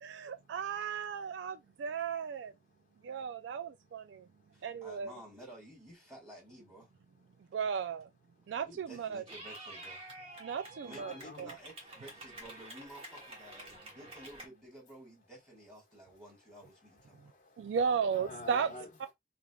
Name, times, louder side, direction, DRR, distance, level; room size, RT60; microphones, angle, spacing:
voice 1, 0.0-2.5 3.0-4.3 4.6-5.1 7.5-8.1 8.5-9.2 10.4-11.6 17.6-18.7, right 6 dB, 80° right, 0.3 m, -35 dB
voice 2, 2.5-3.6 3.9-4.7 7.1-7.6 8.3-8.6 10.4-10.5 10.8-11.5 13.0-13.1 13.7-14.0 15.8-19.1, left 2 dB, 45° left, 0.9 m, -53 dB
voice 3, 4.5-6.9 8.7-10.1 10.8-17.4 17.8-17.9, right 1 dB, 10° right, 1.6 m, -53 dB
Clapping / Cheering, 9.3-14.5, right 1 dB, 30° right, 1.0 m, -49 dB
3.6 x 3.3 x 2.3 m
head